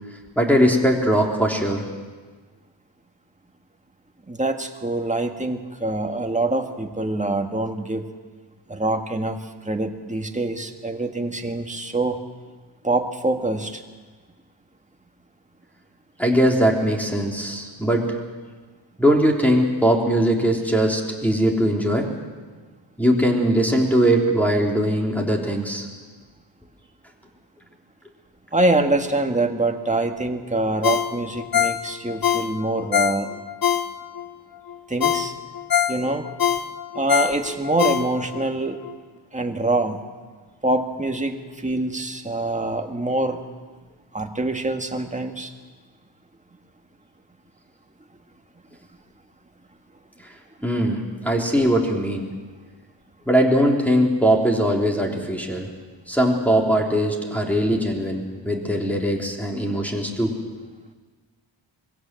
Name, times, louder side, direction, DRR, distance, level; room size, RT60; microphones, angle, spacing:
voice 1, 0.3-1.8 16.2-18.1 19.0-22.1 23.0-25.8 50.6-52.3 53.3-55.7 56.1-60.4, equal, 5° left, 0 dB, 3.4 m, -20 dB
voice 2, 4.3-8.1 8.7-9.4 9.7-12.2 12.8-13.8 28.5-33.3 34.9-35.3 35.9-36.3 37.0-38.8 39.3-40.0 40.6-43.4 44.1-45.5, right 2 dB, 15° right, 4 dB, 1.7 m, -25 dB
Ringtone, 30.8-34.3 34.7-34.8 35.0-38.4 38.8-38.9, left 9 dB, 45° left, 0.9 m, -23 dB
22.5 x 16.5 x 7.7 m, 1.4 s
wide cardioid pair, 85°, 48 cm